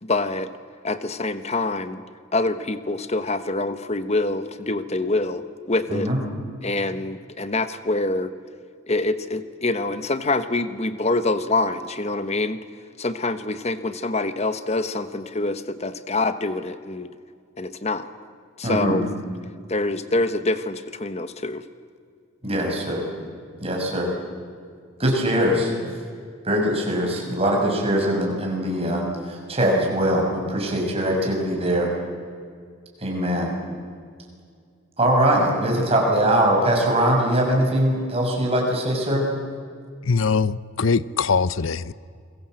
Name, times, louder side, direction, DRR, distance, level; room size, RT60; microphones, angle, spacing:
voice 1, 0.0-0.5 0.8-2.0 2.3-6.1 6.6-8.3 8.9-12.6 13.0-17.1 17.6-18.1 18.6-19.1 19.7-21.7, left 2 dB, 30° left, 1.2 m, -25 dB
voice 2, 5.9-6.2 18.6-19.0 22.4-23.1 23.6-24.1 25.0-25.7 26.4-31.9 33.0-33.5 35.0-39.3, right 1 dB, 30° right, 6.2 m, -22 dB
voice 3, 40.0-41.9, left 5 dB, 70° left, 0.7 m, -22 dB
29.0 x 22.0 x 7.7 m
head